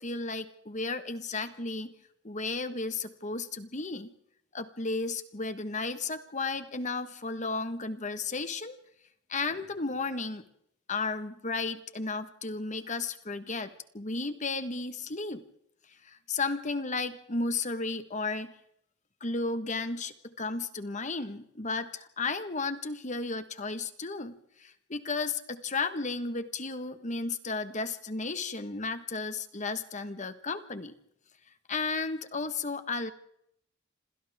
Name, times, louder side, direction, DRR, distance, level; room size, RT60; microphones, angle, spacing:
voice 1, 0.0-1.9 2.2-4.1 4.5-8.7 9.3-10.4 10.9-15.4 16.0-18.5 19.2-30.9 31.7-33.1, left 3 dB, 35° left, 10 dB, 1.4 m, -34 dB
28.5 x 27.0 x 3.6 m, 0.73 s
head